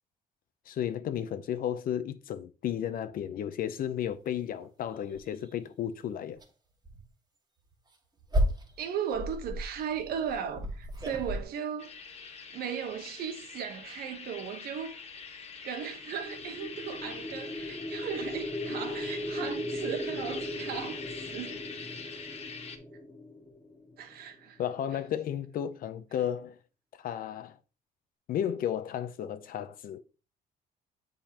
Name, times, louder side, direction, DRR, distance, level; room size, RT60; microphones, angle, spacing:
voice 1, 0.7-6.4 24.6-26.6 27.0-27.6 28.3-30.0, left 10 dB, 55° left, 0.7 m, -33 dB
sound 1, 4.0-4.1 4.6-4.7 5.1-5.5 6.3-6.5 6.8-7.0 7.7-11.4, equal, 25° right, 1.6 m, -33 dB
voice 2, 8.8-11.9 12.5-15.1 15.6-21.0 21.3-21.7 24.0-24.6, right 8 dB, 65° right, 1.1 m, -36 dB
sound 2, 11.8-22.8, left 5 dB, 40° left, 1.1 m, -44 dB
sound 3, 16.1-24.2, left 1 dB, 10° left, 1.2 m, -38 dB
7.5 x 5.2 x 2.9 m
cardioid pair, 110°, 17 cm